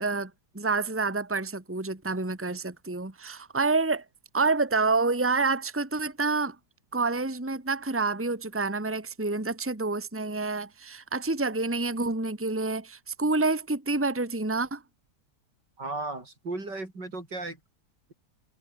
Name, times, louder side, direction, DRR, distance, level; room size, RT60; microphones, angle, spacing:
voice 1, 0.0-4.0 4.3-6.6 6.9-14.8, right 3 dB, 5° right, 2.0 m, -28 dB
voice 2, 15.8-17.6, right 2 dB, 80° right, 6.6 m, -35 dB
omnidirectional pair, 1.9 m